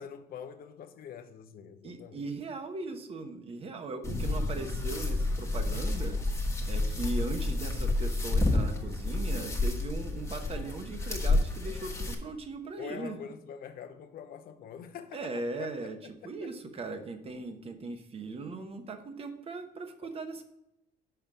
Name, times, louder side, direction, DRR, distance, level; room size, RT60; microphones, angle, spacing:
voice 1, 0.0-2.2 12.8-16.5 20.0-20.1, left 7 dB, 60° left, 0.8 m, -45 dB
voice 2, 1.8-6.3 6.7-13.2 15.1-16.0 16.2-20.4, right 3 dB, 35° right, 1.0 m, -39 dB
sound 1, 4.0-12.1, left 2 dB, 15° left, 1.3 m, -30 dB
5.8 x 5.2 x 6.0 m
cardioid pair, 110°, 17 cm